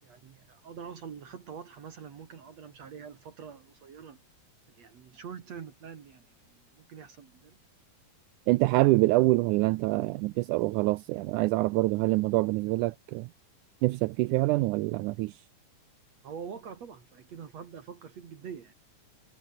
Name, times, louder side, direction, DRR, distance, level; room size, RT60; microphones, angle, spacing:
voice 1, 0.0-4.2 4.7-7.6 16.2-18.7, right 7 dB, 55° right, 2.9 m, -45 dB
voice 2, 8.5-13.3 13.8-15.4, right 20 dB, 85° right, 1.8 m, -25 dB
omnidirectional pair, 4.0 m